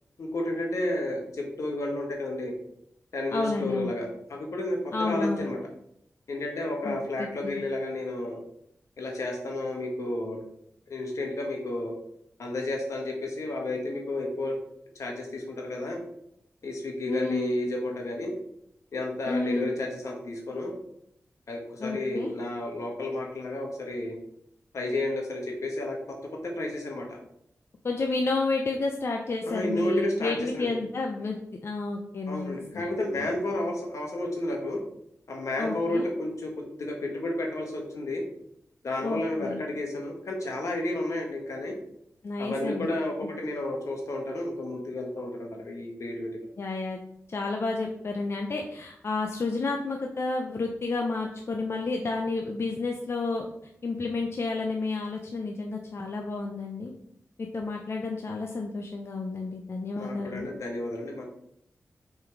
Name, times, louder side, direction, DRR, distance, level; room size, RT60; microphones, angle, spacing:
voice 1, 0.2-2.5 3.1-5.6 6.3-8.4 9.0-10.4 10.9-11.9 12.4-14.6 14.9-16.0 16.6-18.4 18.9-20.7 21.5-24.2 24.7-26.2 26.4-27.2 29.5-30.7 32.3-34.8 35.3-36.5 36.8-38.2 38.8-41.7 42.4-46.5 60.0-61.2, left 1 dB, 80° left, 1 dB, 1.7 m, -31 dB
voice 2, 3.3-3.9 4.9-5.4 6.8-7.6 17.1-17.5 19.3-19.7 21.8-22.3 27.8-31.4 31.6-32.9 33.2-33.3 35.6-36.1 39.0-39.6 42.2-42.9 46.6-47.0 47.3-53.5 53.8-56.9 57.4-60.5, left 3 dB, 55° left, 2 dB, 0.7 m, -31 dB
6.3 x 4.5 x 4.7 m, 0.75 s
wide cardioid pair, 100°, 5 cm